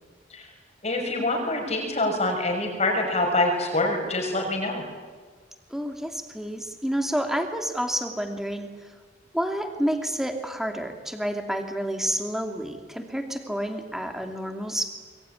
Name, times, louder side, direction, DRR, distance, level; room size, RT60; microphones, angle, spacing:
voice 1, 0.8-4.8, left 2 dB, 35° left, 2 dB, 6.0 m, -25 dB
voice 2, 5.7-8.9 9.3-14.9, equal, ahead, 5 dB, 2.7 m, -29 dB
26.0 x 23.0 x 9.9 m, 1.5 s
head